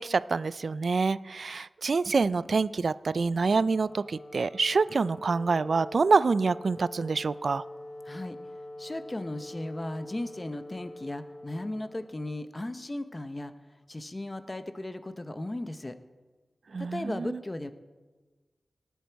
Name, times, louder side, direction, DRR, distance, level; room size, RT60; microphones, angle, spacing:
voice 1, 0.0-7.6 16.7-17.4, right 4 dB, 65° right, 18 dB, 0.3 m, -26 dB
Wind instrument woodwind instrument, 3.5-12.8, left 1 dB, 70° left, 4.0 m, -45 dB
voice 2, 8.1-8.4 8.8-13.5 13.9-15.9 16.8-17.7, left 1 dB, 25° left, 10 dB, 0.8 m, -36 dB
19.0 x 8.2 x 4.6 m, 1.3 s
wide cardioid pair, 80°, 0 cm